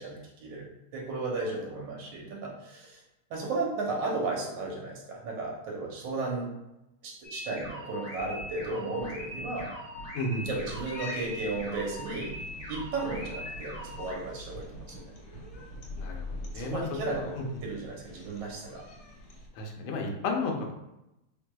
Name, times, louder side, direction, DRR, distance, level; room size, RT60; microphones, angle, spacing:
voice 1, 0.0-3.0 3.3-6.5 7.0-9.7 10.4-12.3 12.7-15.0 16.5-17.3 17.6-18.8 19.7-19.9, right 3 dB, 70° right, -1 dB, 1.5 m, -34 dB
sound 1, 7.2-14.1, left 1 dB, 25° left, 1.3 m, -42 dB
sound 2, 7.6-7.8 8.2-14.1 14.5-17.5, right 2 dB, 45° left, 1.4 m, -49 dB
voice 2, 10.1-10.5 16.0-17.4 19.5-20.7, left 2 dB, 85° left, 1 dB, 1.4 m, -33 dB
Cat, 10.5-19.5, left 2 dB, 70° left, 1.2 m, -45 dB
3.3 x 3.2 x 2.2 m, 0.91 s
omnidirectional pair, 2.2 m